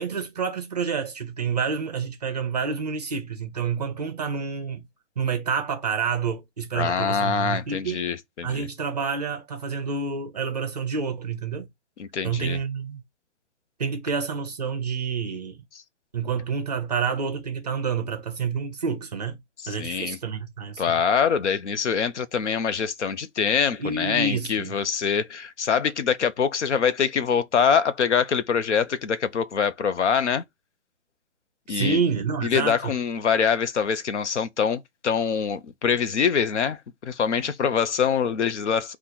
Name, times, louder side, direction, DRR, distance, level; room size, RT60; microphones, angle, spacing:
voice 1, 0.0-4.8 5.2-8.1 8.4-11.7 12.2-13.0 13.8-15.6 16.1-19.4 19.7-21.0 23.8-24.7 31.7-32.9, right 5 dB, 35° right, 0.6 m, -28 dB
voice 2, 6.7-8.6 12.0-12.6 19.6-20.2 20.8-30.4 31.7-32.0 32.4-39.0, left 7 dB, 75° left, 0.8 m, -24 dB
3.8 x 2.5 x 4.4 m
hypercardioid pair, 170°, 35 cm